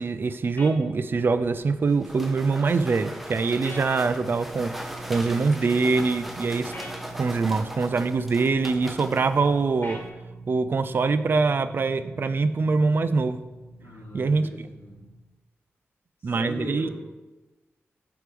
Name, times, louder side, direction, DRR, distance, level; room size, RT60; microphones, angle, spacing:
voice 1, 0.0-4.7 5.1-6.7 7.1-10.0 10.5-13.4 14.1-14.4 16.2-16.9, right 4 dB, 50° right, 11 dB, 0.4 m, -24 dB
sound 1, 0.6-0.8 3.6-3.9 6.7-7.0 9.8-10.1, left 1 dB, 45° left, 1.4 m, -39 dB
sound 2, 1.4-10.1, equal, 5° right, 0.6 m, -40 dB
sound 3, 4.0-15.2, right 3 dB, 75° right, 1.5 m, -44 dB
voice 2, 13.8-15.0 16.2-16.9, left 1 dB, 70° left, -7 dB, 1.5 m, -38 dB
7.8 x 3.5 x 5.0 m, 1.1 s
wide cardioid pair, 100°, 5 cm